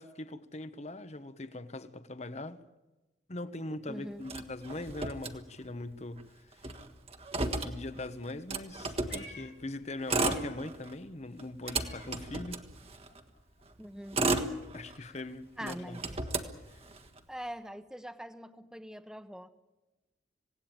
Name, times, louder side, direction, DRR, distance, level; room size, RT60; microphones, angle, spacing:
voice 1, 0.0-2.6 3.3-6.7 7.5-12.6 14.7-16.0, left 2 dB, 40° left, 1.2 m, -41 dB
voice 2, 3.9-4.2 13.8-14.2 15.0-15.1 15.6-16.0 17.3-19.5, equal, 5° right, 1.1 m, -43 dB
Motor vehicle (road), 4.3-5.9 6.2-6.3 6.5-9.3 9.9-11.0 11.4-13.2 13.8-15.2 15.6-17.2, right 3 dB, 35° right, 1.5 m, -34 dB
Meow, 8.6-10.8 11.1-12.8 13.0-17.2, left 4 dB, 60° left, 3.3 m, -55 dB
26.5 x 17.5 x 9.0 m
head